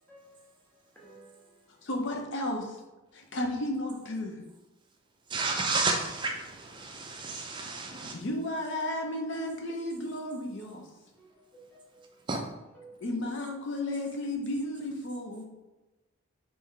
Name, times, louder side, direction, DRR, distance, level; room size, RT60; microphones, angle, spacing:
voice 1, 0.0-1.9 11.2-12.2 12.7-13.4, right 2 dB, 5° left, 0.7 m, -56 dB
voice 2, 1.8-2.8 3.1-4.4 7.9-10.8 13.0-15.4, left 1 dB, 55° left, 0.6 m, -33 dB
voice 3, 5.3-8.2 12.3-12.4, right 3 dB, 20° right, 0.4 m, -31 dB
3.3 x 2.7 x 3.6 m
head